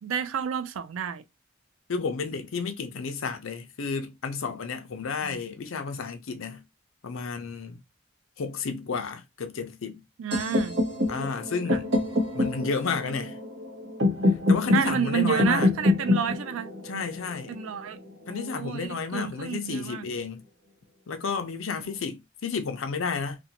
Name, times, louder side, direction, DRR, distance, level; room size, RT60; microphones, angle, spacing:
voice 1, 0.0-1.2 5.2-5.4 10.2-10.8 11.7-11.8 14.7-16.7 17.5-18.0 18.3-20.1, right 8 dB, 75° right, 0.4 m, -30 dB
voice 2, 1.9-6.6 7.0-7.8 8.4-10.0 11.1-12.0 12.3-13.4 14.2-15.7 16.8-17.6 18.3-20.4 21.1-23.4, left 5 dB, 70° left, 0.5 m, -31 dB
sound 1, 10.3-18.2, left 2 dB, 55° right, 0.8 m, -26 dB
2.6 x 2.1 x 2.8 m
head